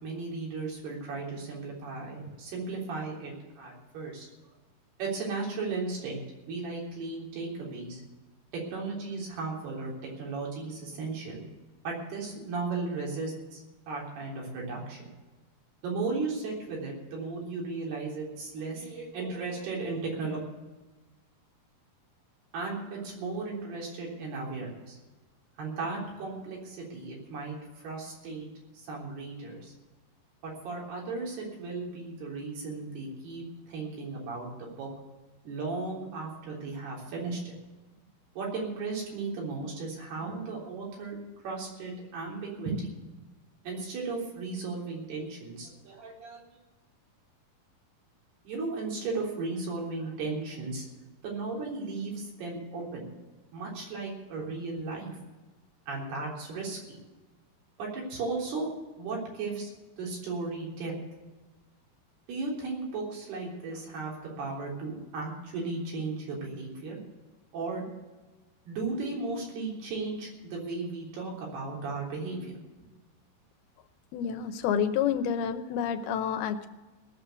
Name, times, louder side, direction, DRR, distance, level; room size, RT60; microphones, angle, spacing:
voice 1, 0.0-4.3 5.0-8.0 8.5-11.4 11.8-15.1 15.8-20.4 22.5-25.0 25.6-28.5 28.7-29.7 30.4-34.9 35.4-37.5 38.4-41.2 41.4-42.9 43.6-46.4 48.5-50.8 51.2-53.1 53.5-55.2 55.9-57.0 57.8-58.7 59.0-59.7 60.0-60.9 62.3-67.0 67.5-67.9 68.7-72.5, right 3 dB, 80° right, -3 dB, 5.6 m, -35 dB
voice 2, 74.1-76.7, left 8 dB, 80° left, 9 dB, 2.7 m, -29 dB
18.5 x 7.0 x 8.2 m, 1.2 s
omnidirectional pair, 4.5 m